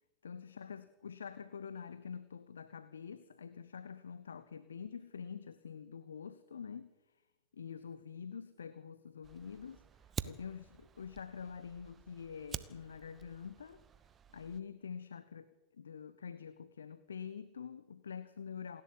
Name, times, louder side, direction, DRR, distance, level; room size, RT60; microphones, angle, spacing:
voice 1, 0.2-6.9 7.5-9.8 10.2-13.8 14.3-18.8, left 6 dB, 75° left, 0.9 m, -46 dB
Fire, 9.2-14.6, right 8 dB, 25° right, 0.9 m, -48 dB
27.5 x 11.5 x 8.1 m
figure-of-eight pair, 95°, 0 cm